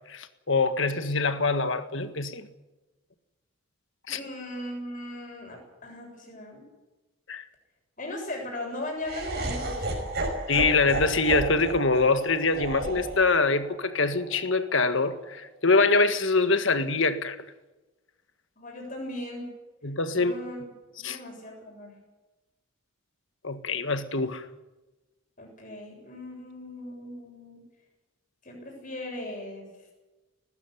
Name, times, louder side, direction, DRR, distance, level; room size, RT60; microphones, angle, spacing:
voice 1, 0.1-2.5 4.1-4.2 7.3-7.4 10.5-17.4 19.8-20.3 21.0-21.2 23.4-24.4, left 3 dB, 60° left, 1.7 m, -24 dB
voice 2, 4.1-6.6 8.0-10.0 18.6-19.5 20.1-20.6 21.0-22.0 25.4-27.6 28.4-29.7, left 1 dB, 40° left, 7.6 m, -38 dB
Laughter, 9.0-15.2, right 2 dB, 50° right, 5.5 m, -33 dB
19.0 x 15.0 x 9.9 m
head